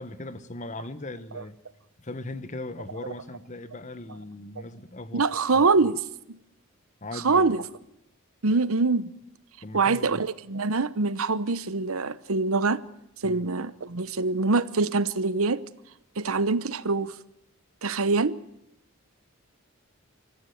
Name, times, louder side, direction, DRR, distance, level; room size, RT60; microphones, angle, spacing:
voice 1, 0.0-1.6 2.0-5.3 5.5-6.0 7.0-7.5 9.6-10.2 13.2-13.5, left 2 dB, 35° left, 1.2 m, -39 dB
voice 2, 5.1-6.0 7.2-7.6 8.4-9.1 9.7-12.8 13.2-15.6 16.2-17.1 17.8-18.4, right 3 dB, 80° right, 0.9 m, -24 dB
25.5 x 15.0 x 9.3 m
head